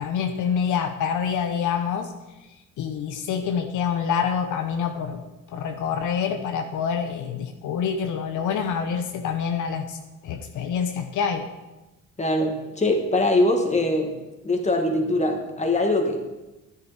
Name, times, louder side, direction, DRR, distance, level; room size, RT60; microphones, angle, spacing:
voice 1, 0.0-2.1 2.8-5.2 5.5-10.0 10.2-11.5, left 7 dB, 80° left, 6 dB, 0.9 m, -26 dB
voice 2, 12.2-14.1 14.4-16.2, left 1 dB, 25° left, 3 dB, 1.9 m, -22 dB
10.0 x 10.0 x 4.3 m, 1.1 s
cardioid pair, 90°, 30 cm